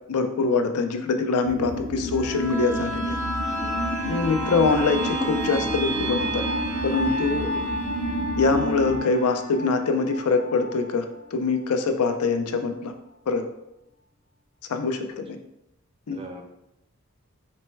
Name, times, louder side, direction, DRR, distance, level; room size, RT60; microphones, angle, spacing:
voice 1, 0.1-3.2 4.1-6.5 6.8-7.4 8.4-11.0 11.3-12.9 13.3-13.4 14.7-15.4 16.1-16.2, left 4 dB, 90° left, 7 dB, 0.5 m, -24 dB
sound 1, 1.4-9.0, equal, 60° right, 0.7 m, -30 dB
sound 2, 2.1-11.7 12.1-12.2, right 1 dB, 90° right, 1.0 m, -32 dB
voice 2, 4.0-4.3 7.3-7.6 16.1-16.4, right 2 dB, 25° right, 4 dB, 0.4 m, -39 dB
4.1 x 2.1 x 4.4 m, 0.86 s
head